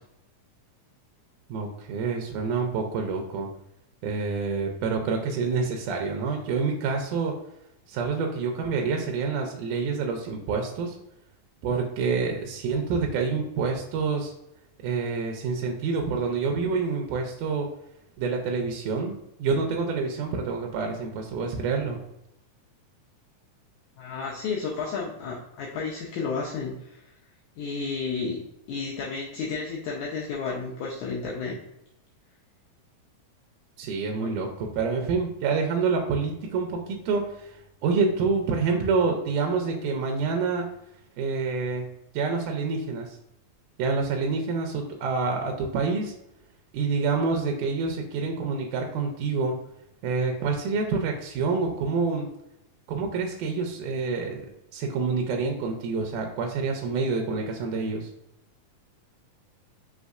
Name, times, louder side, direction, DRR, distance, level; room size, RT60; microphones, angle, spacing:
voice 1, 1.5-3.5 4.0-7.3 7.9-11.0 11.6-14.3 14.8-17.7 18.2-22.0 33.8-40.7 41.2-41.9 42.1-43.2 43.8-46.1 46.7-49.6 50.0-52.3 52.9-54.5 54.7-58.1, right 4 dB, 80° right, 2 dB, 2.0 m, -27 dB
voice 2, 24.0-27.0 27.6-28.4 28.7-31.6 34.2-34.3, left 4 dB, 75° left, -4 dB, 1.8 m, -32 dB
5.3 x 3.3 x 2.4 m, 0.83 s
omnidirectional pair, 3.9 m